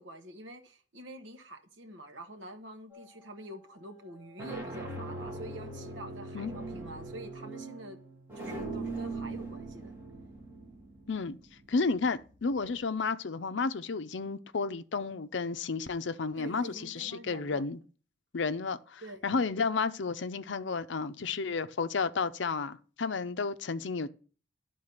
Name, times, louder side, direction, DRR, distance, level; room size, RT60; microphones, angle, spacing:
voice 1, 0.0-8.0 8.3-9.9 16.4-17.6 19.0-19.3, right 1 dB, 75° right, 1.4 m, -46 dB
sound 1, 2.9-3.4 4.1-12.8, right 2 dB, 10° right, 2.1 m, -41 dB
voice 2, 11.7-17.8 18.3-24.1, left 4 dB, 70° left, 0.6 m, -32 dB
11.5 x 3.9 x 6.5 m
head